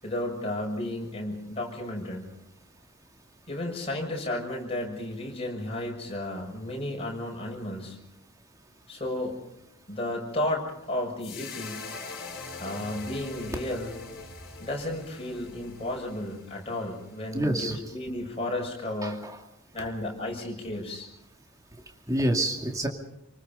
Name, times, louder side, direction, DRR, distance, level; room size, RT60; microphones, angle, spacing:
voice 1, 0.0-2.3 3.5-8.0 8.9-9.4 9.9-11.8 12.6-13.9 14.6-19.2 19.7-21.1, left 1 dB, 30° left, 0 dB, 6.7 m, -33 dB
sound 1, 11.2-17.6, left 3 dB, 50° left, 4.9 m, -43 dB
voice 2, 17.3-17.8 19.0-19.4 22.1-22.9, right 1 dB, 15° right, 2 dB, 2.3 m, -27 dB
29.0 x 19.5 x 5.5 m, 0.82 s
head